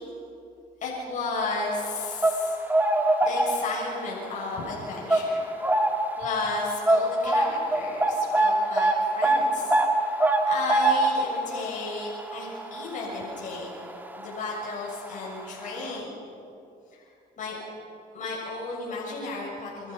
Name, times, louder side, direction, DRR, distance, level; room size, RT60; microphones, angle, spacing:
voice 1, 0.8-2.6 3.2-5.5 6.2-13.7 14.2-16.1 16.9-17.1 17.4-17.6 18.1-19.9, left 3 dB, 50° left, -4 dB, 7.0 m, -33 dB
sound 1, 1.9-3.9 4.3-4.6 5.1-6.2 6.4-6.5 6.9-13.9 14.2-14.4 15.2-15.3 15.7-15.8, right 2 dB, 10° right, 2.0 m, -24 dB
29.5 x 24.5 x 5.8 m, 2.7 s
cardioid pair, 110°, 17 cm